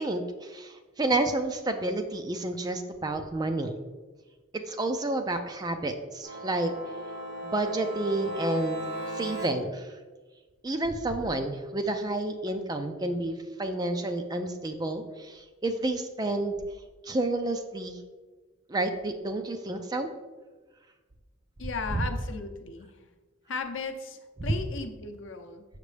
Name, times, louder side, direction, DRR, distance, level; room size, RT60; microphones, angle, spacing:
voice 1, 0.0-3.8 4.5-6.7 7.4-8.8 9.1-9.9 10.6-16.5 17.0-18.0 18.7-20.1 21.9-22.0 24.4-24.6, right 2 dB, 20° right, 6 dB, 0.4 m, -30 dB
sound 1, 6.2-9.5, right 1 dB, 75° right, 2.1 m, -36 dB
voice 2, 21.6-22.9 23.5-25.7, left 4 dB, 70° left, 5 dB, 0.7 m, -36 dB
6.6 x 6.0 x 3.3 m, 1.3 s
head